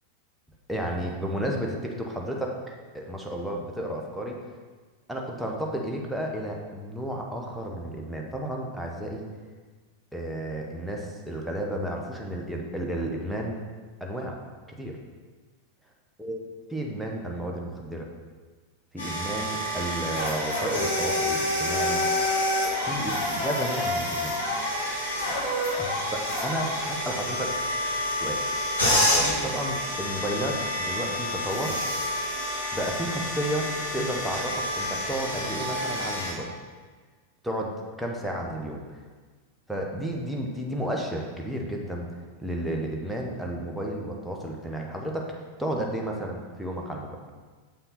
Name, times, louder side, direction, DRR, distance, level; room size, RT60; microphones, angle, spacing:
voice 1, 0.7-2.6 2.9-4.4 5.1-9.2 10.1-13.6 14.0-14.4 14.8-15.0 16.2-16.4 16.7-18.1 18.9-22.1 22.8-24.4 25.8-25.9 26.4-27.6 28.2-28.4 29.4-31.8 32.7-36.5 37.4-39.0 39.7-42.1 42.4-45.3 45.6-47.2, right 1 dB, ahead, -1 dB, 1.1 m, -32 dB
sound 1, 19.0-36.3, left 1 dB, 75° left, 2.2 m, -28 dB
6.8 x 5.8 x 4.1 m, 1.4 s
figure-of-eight pair, 90°, 0 cm